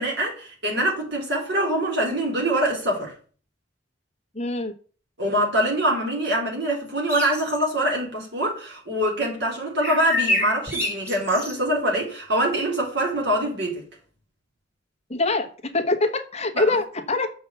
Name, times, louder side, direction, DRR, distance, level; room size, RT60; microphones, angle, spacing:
voice 1, 0.0-3.1 5.2-13.8 16.5-16.7, right 1 dB, 65° right, 3.8 m, -24 dB
voice 2, 4.3-4.7 15.1-15.5 15.7-17.3, left 2 dB, 35° left, 1.2 m, -24 dB
sound 1, 7.1-7.7 9.8-11.6, left 2 dB, 15° right, 3.5 m, -27 dB
7.2 x 5.5 x 7.1 m
head